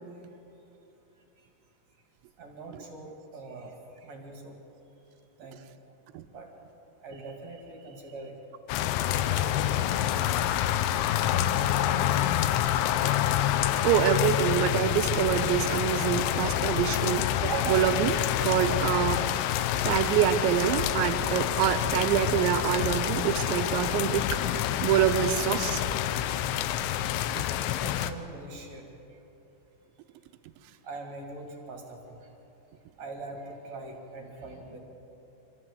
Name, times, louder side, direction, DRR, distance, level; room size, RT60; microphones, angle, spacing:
voice 1, 2.4-4.6 5.4-5.6 6.3-6.5 7.0-8.4 9.2-12.1 17.6-17.7 27.7-29.2 30.8-32.3 33.0-34.8, right 2 dB, 45° right, 1 dB, 2.9 m, -43 dB
sound 1, 8.7-28.1, left 12 dB, 85° left, 3.2 m, -27 dB
voice 2, 13.8-18.2 18.4-19.2 19.8-24.4 24.8-25.8 27.4-27.5, right 11 dB, 80° right, 7 dB, 3.0 m, -26 dB
25.5 x 14.0 x 7.9 m, 3.0 s
omnidirectional pair, 5.5 m